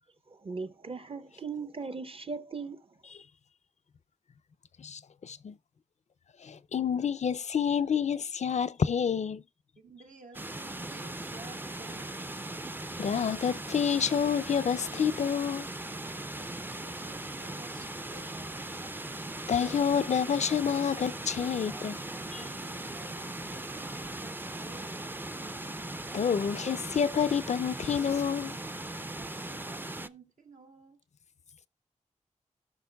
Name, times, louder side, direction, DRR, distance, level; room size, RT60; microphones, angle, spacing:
voice 1, 0.4-2.8, right 4 dB, 45° right, 0.9 m, -38 dB
voice 2, 4.8-5.5 6.4-9.4 13.0-15.7 19.5-22.0 22.3-22.4 26.1-28.5, left 7 dB, 60° left, 0.4 m, -28 dB
voice 3, 9.8-12.2 16.1-18.6 22.3-25.2 28.9-31.0, right 3 dB, 75° right, 1.6 m, -53 dB
sound 1, 10.3-30.1, right 2 dB, 15° right, 0.5 m, -39 dB
17.5 x 6.0 x 2.3 m
wide cardioid pair, 75°, 13 cm